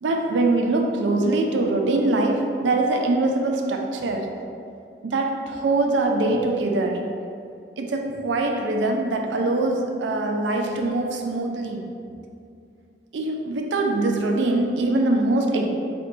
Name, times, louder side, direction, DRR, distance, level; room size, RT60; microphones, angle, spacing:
voice 1, 0.0-4.3 5.0-7.2 7.8-11.9 13.1-15.7, right 2 dB, 85° right, 2 dB, 0.4 m, -23 dB
4.2 x 2.2 x 3.8 m, 2.4 s
head